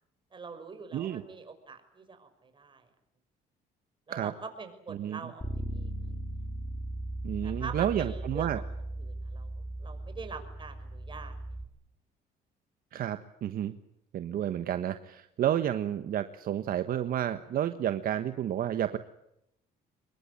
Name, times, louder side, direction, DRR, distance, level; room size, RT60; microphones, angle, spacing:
voice 1, 0.3-2.9 4.1-5.4 5.7-6.2 7.4-8.6 9.0-11.3, right 4 dB, 30° right, 7 dB, 6.3 m, -44 dB
Bass guitar, 5.4-11.6, right 1 dB, 15° left, 4.5 m, -37 dB
voice 2, 7.2-8.6 12.9-13.8 14.1-19.0, right 11 dB, 60° right, 10 dB, 1.4 m, -31 dB
25.0 x 22.0 x 9.9 m, 0.80 s
cardioid pair, 110°, 17 cm